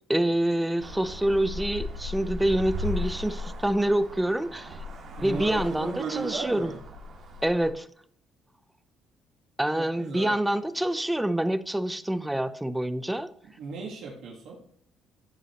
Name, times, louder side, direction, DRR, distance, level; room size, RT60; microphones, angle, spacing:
voice 1, 0.1-4.7 5.2-6.7 7.4-7.8 9.6-13.3, right 1 dB, 5° right, 13 dB, 0.6 m, -26 dB
Traffic noise roadway noise, 0.8-7.7, left 2 dB, 60° right, 2.2 m, -37 dB
voice 2, 5.2-6.8 9.8-10.4 13.6-14.6, right 5 dB, 75° right, -2 dB, 1.6 m, -36 dB
13.5 x 5.4 x 3.0 m, 0.62 s
cardioid pair, 85°, 0 cm